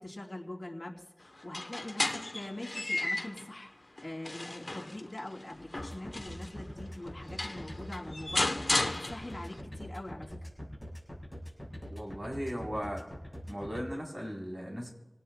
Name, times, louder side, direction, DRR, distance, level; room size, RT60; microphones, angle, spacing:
voice 1, 0.0-3.7 4.0-10.4, left 1 dB, 30° left, -2 dB, 3.0 m, -43 dB
sound 1, 1.4-3.5 4.0-6.5 7.1-7.2 7.4-9.6, left 2 dB, 45° left, 1.0 m, -34 dB
sound 2, 5.8-13.8, equal, ahead, 6.1 m, -43 dB
voice 2, 11.9-13.0 13.5-14.9, equal, 35° right, -1 dB, 3.8 m, -37 dB
28.5 x 18.0 x 2.3 m, 1.0 s
wide cardioid pair, 55°, 0 cm